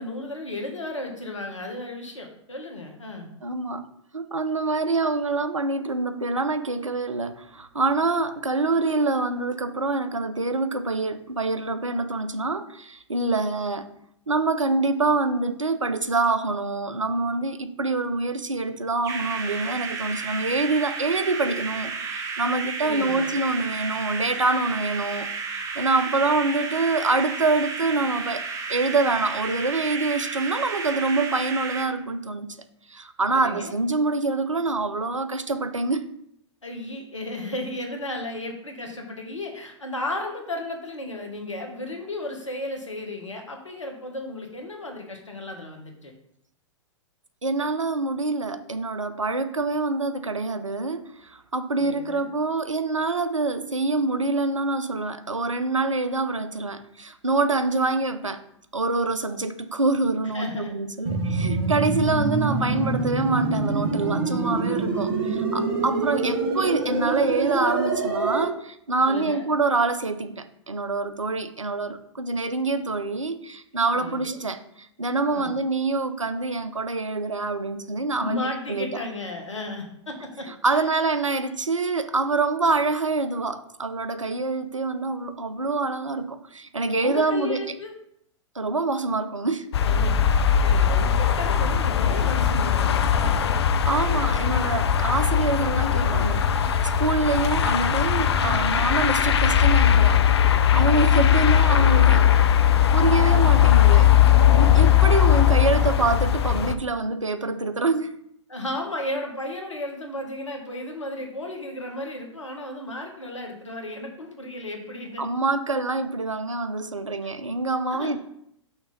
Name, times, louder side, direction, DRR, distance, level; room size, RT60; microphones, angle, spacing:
voice 1, 0.0-3.3 22.8-23.3 33.3-33.7 36.6-46.1 51.7-52.4 60.3-60.7 65.0-65.3 69.1-69.5 73.9-74.5 75.3-75.5 78.2-80.8 87.0-87.9 89.8-93.5 101.7-102.2 108.5-115.2 117.2-117.3 117.9-118.1, left 2 dB, 75° left, 3 dB, 1.3 m, -34 dB
voice 2, 3.4-13.9 14.3-28.4 28.7-32.5 32.9-36.0 47.4-58.4 58.7-78.4 78.7-78.9 80.5-87.6 88.6-89.7 93.8-102.2 102.9-104.1 104.5-108.1 115.2-118.2, right 3 dB, 85° right, 10 dB, 0.6 m, -26 dB
sound 1, 19.0-31.9, right 4 dB, 20° right, 0.7 m, -32 dB
sound 2, 61.0-68.4, right 3 dB, 45° right, 1.1 m, -25 dB
sound 3, 89.7-106.7, left 9 dB, 60° left, 0.5 m, -19 dB
6.0 x 3.3 x 5.1 m, 0.73 s
figure-of-eight pair, 105°, 16 cm